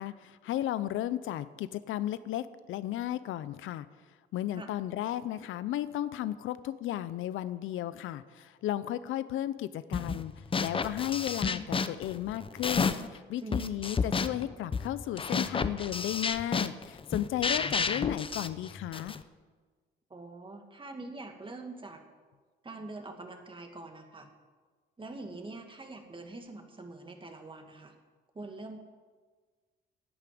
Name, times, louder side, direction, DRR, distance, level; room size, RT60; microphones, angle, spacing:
voice 1, 0.0-3.9 4.3-10.3 10.6-19.2, left 13 dB, 80° left, 15 dB, 0.6 m, -34 dB
sound 1, 9.9-10.2 10.5-13.2 13.5-19.2, left 5 dB, 25° left, 0.7 m, -31 dB
voice 2, 13.4-13.8 20.1-22.0 22.6-24.3 25.0-27.9 28.3-28.8, right 2 dB, 25° right, 4 dB, 2.1 m, -44 dB
11.0 x 8.5 x 9.3 m, 1.5 s
cardioid pair, 90°, 20 cm